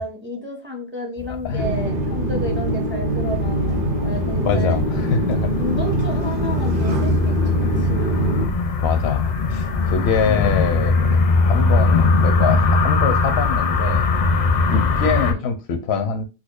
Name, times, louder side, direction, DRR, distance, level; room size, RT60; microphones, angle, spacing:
voice 1, 0.0-3.8 4.0-4.8 5.6-7.3 7.8-8.4 10.2-10.5 15.1-15.4, equal, 15° right, 0.5 m, -31 dB
sound 1, 1.2-15.3, left 3 dB, 55° left, 0.5 m, -21 dB
sound 2, 1.6-8.5, right 1 dB, 55° right, 1.0 m, -23 dB
voice 2, 4.4-5.6 8.8-14.1 14.7-16.2, left 5 dB, 80° left, 0.9 m, -24 dB
4.2 x 2.2 x 2.4 m
omnidirectional pair, 1.1 m